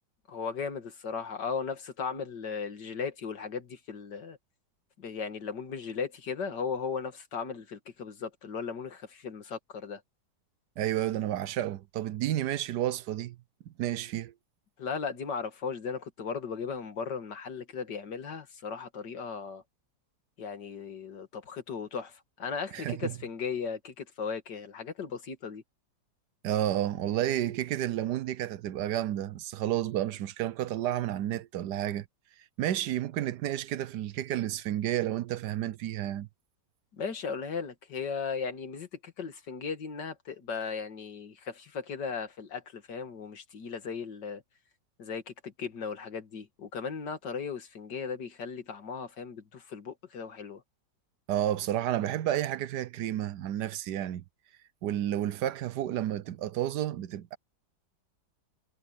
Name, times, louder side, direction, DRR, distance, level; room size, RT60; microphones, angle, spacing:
voice 1, 0.3-4.4 5.0-10.0 14.8-19.6 20.4-25.6 36.9-44.4 45.0-50.6, left 5 dB, 75° left, 2.5 m, -37 dB
voice 2, 10.8-13.4 13.8-14.3 22.7-23.1 26.4-32.1 32.6-36.3 51.3-54.2 54.8-57.4, right 12 dB, 75° right, 1.3 m, -31 dB
omnidirectional pair, 1.9 m